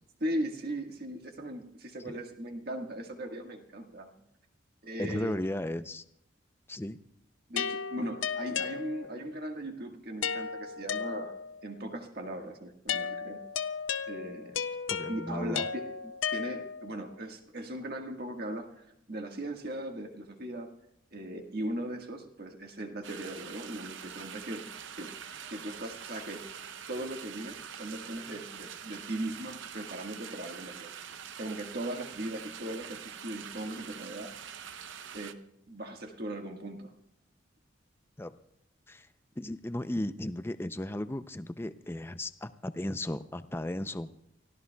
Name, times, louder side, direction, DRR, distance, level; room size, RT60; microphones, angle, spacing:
voice 1, 0.2-4.2 4.8-5.4 7.5-13.4 14.1-14.6 15.1-15.9 16.3-20.7 21.1-25.2 25.5-26.5 26.9-30.9 31.4-34.3 35.1-36.9, right 1 dB, 50° right, 3 dB, 1.6 m, -38 dB
voice 2, 5.0-6.0 6.7-7.0 14.9-15.7 38.2-38.3 38.9-39.1 39.4-44.1, left 1 dB, 10° left, 12 dB, 0.4 m, -35 dB
sound 1, 7.6-9.3 10.2-11.6 12.9-17.0, left 7 dB, 75° left, 0.5 m, -35 dB
sound 2, 23.0-35.3, right 8 dB, 70° right, 0.7 m, -45 dB
29.0 x 16.0 x 2.3 m, 0.77 s
head